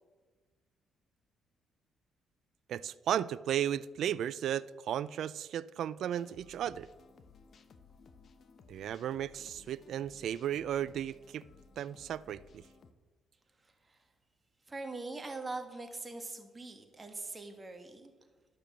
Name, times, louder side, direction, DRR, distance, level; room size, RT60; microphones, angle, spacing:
voice 1, 2.7-6.9 8.7-11.4 11.8-12.6, right 10 dB, 70° right, 18 dB, 0.4 m, -35 dB
sound 1, 6.0-12.9, left 4 dB, 50° left, 1.0 m, -59 dB
voice 2, 13.6-14.0 14.7-18.1, right 3 dB, 25° right, 5 dB, 1.8 m, -42 dB
12.0 x 6.8 x 7.3 m, 1.3 s
cardioid pair, 90°, 0 cm